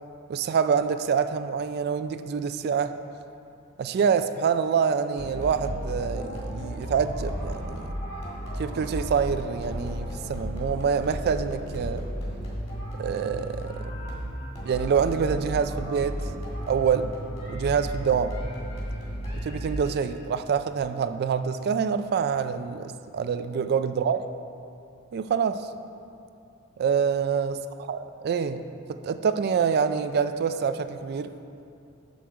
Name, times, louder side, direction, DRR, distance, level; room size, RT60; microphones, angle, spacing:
voice 1, 0.3-2.9 3.8-7.9 8.6-12.0 13.0-14.1 14.6-16.2 16.6-17.1 17.5-18.4 19.4-24.2 25.1-25.6 26.8-27.6 27.9-28.6 28.9-31.3, right 6 dB, 50° right, 11 dB, 0.3 m, -26 dB
sound 1, 5.2-20.1, equal, 30° left, 1.8 m, -34 dB
7.7 x 6.4 x 4.7 m, 2.7 s
head